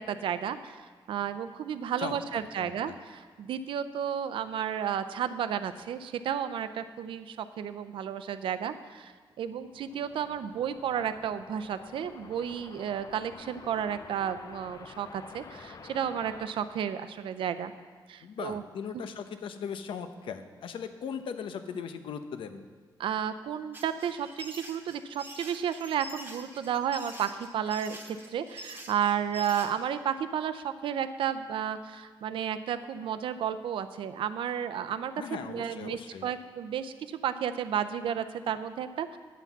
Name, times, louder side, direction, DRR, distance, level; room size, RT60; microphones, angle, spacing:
voice 1, 0.0-9.1 9.4-17.7 18.1-18.6 18.9-19.0 23.0-39.2, right 8 dB, 90° right, 11 dB, 0.5 m, -32 dB
voice 2, 2.6-2.9 18.2-22.7 35.2-36.3, left 7 dB, 85° left, 9 dB, 0.7 m, -38 dB
sound 1, 9.3-17.7, left 5 dB, 45° left, 0.6 m, -49 dB
sound 2, 23.7-29.7, right 1 dB, 25° right, 1.3 m, -45 dB
9.3 x 5.8 x 7.1 m, 1.5 s
wide cardioid pair, 135°, 9 cm